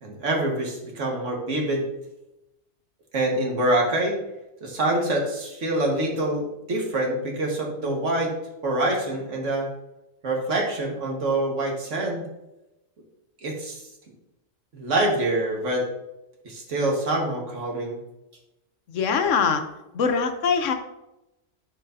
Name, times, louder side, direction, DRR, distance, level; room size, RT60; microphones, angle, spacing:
voice 1, 0.0-1.8 3.1-4.2 4.6-6.4 6.7-8.3 8.6-9.7 10.2-12.3 13.4-13.8 14.7-15.9 16.4-18.0, right 1 dB, 85° right, 0 dB, 1.8 m, -25 dB
voice 2, 18.9-19.6 19.9-20.7, left 6 dB, 90° left, 7 dB, 1.2 m, -22 dB
11.0 x 4.9 x 2.6 m, 0.93 s
omnidirectional pair, 1.2 m